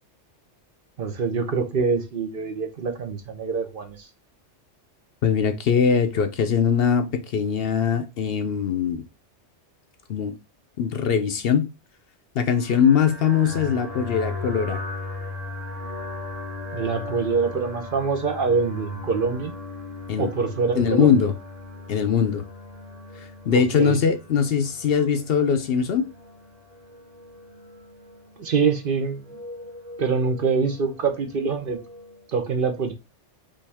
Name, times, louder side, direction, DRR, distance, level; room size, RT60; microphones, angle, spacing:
voice 1, 1.0-4.1 16.7-19.5 20.2-21.2 23.5-24.0 28.4-29.4 30.0-31.8 32.3-32.9, right 5 dB, 55° right, 0.9 m, -25 dB
voice 2, 5.2-9.0 10.1-10.3 10.8-11.7 12.4-14.8 20.1-20.3 20.8-21.3 21.9-22.4 23.2-26.1, left 7 dB, 65° left, 0.7 m, -21 dB
sound 1, 12.6-32.3, left 2 dB, 80° right, 2.0 m, -38 dB
5.4 x 2.7 x 3.4 m
omnidirectional pair, 1.2 m